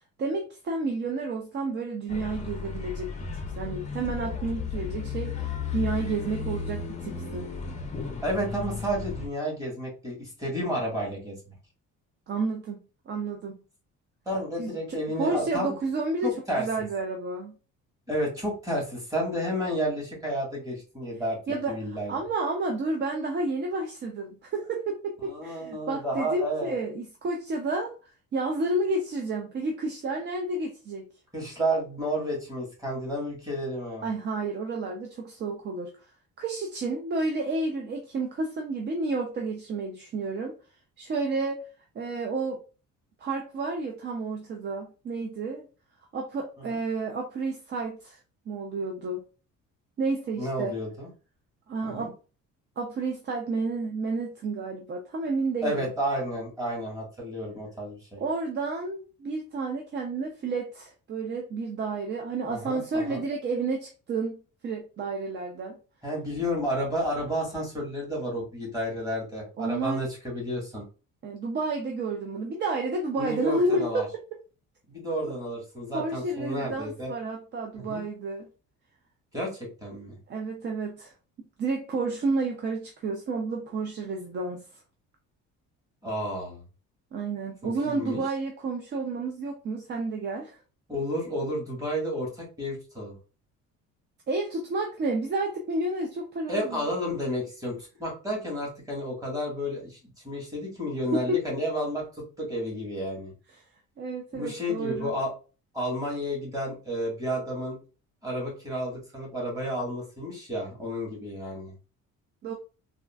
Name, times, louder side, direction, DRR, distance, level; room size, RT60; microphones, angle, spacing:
voice 1, 0.2-3.3 3.6-7.5 12.3-12.8 13.1-13.6 14.6-17.6 21.5-27.9 28.3-31.1 34.0-35.9 36.4-40.5 41.0-41.6 42.0-42.6 43.2-45.7 46.1-48.2 48.5-49.2 50.0-50.8 51.7-52.1 52.8-55.8 58.2-65.8 69.6-70.0 71.2-74.2 75.9-78.5 80.3-81.1 81.6-84.6 87.1-90.6 94.3-96.8 101.1-101.4 103.5-103.6 104.0-105.1 112.4-112.5, right 3 dB, 35° right, 2 dB, 0.4 m, -31 dB
sound 1, 2.1-9.3, left 6 dB, 25° left, 0.5 m, -34 dB
voice 2, 8.2-11.4 14.2-15.7 16.2-16.6 18.1-21.4 21.7-22.1 25.2-26.7 31.3-34.1 50.4-51.1 51.8-52.1 55.6-58.2 62.5-63.2 66.0-70.8 73.2-74.0 74.9-77.1 77.7-78.0 79.3-80.2 86.0-86.6 87.8-88.2 90.9-93.1 96.5-100.0 100.2-103.3 104.3-105.3 105.7-107.8 108.2-111.7, equal, 10° right, -4 dB, 1.5 m, -31 dB
3.5 x 2.4 x 2.2 m, 0.34 s
cardioid pair, 140°, 31 cm